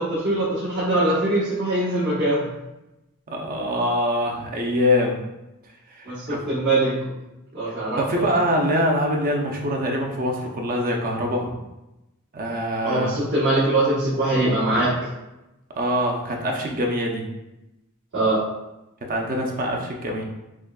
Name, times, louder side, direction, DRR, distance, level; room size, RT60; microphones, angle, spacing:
voice 1, 0.0-2.5 6.1-7.0 7.5-8.2 12.8-15.1 18.1-18.4, right 2 dB, 55° right, -10 dB, 1.1 m, -22 dB
voice 2, 3.3-5.1 5.9-6.5 8.0-11.5 12.3-13.2 15.8-17.2 19.1-20.2, equal, 40° right, 1 dB, 0.6 m, -24 dB
6.1 x 2.2 x 2.3 m, 0.95 s
head